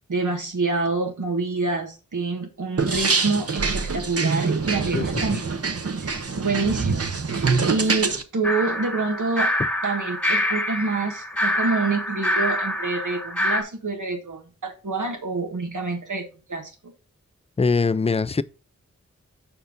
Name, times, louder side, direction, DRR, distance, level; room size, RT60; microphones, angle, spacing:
voice 1, 0.1-5.4 6.0-9.5 9.8-16.9, right 3 dB, 90° right, 1.4 m, -27 dB
sound 1, 2.8-8.2, right 4 dB, 50° right, 0.8 m, -25 dB
voice 2, 4.9-5.4 17.6-18.4, left 4 dB, 20° left, 0.4 m, -22 dB
sound 2, 8.4-13.6, left 1 dB, 5° left, 1.1 m, -26 dB
5.6 x 4.4 x 5.1 m
wide cardioid pair, 50°, 30 cm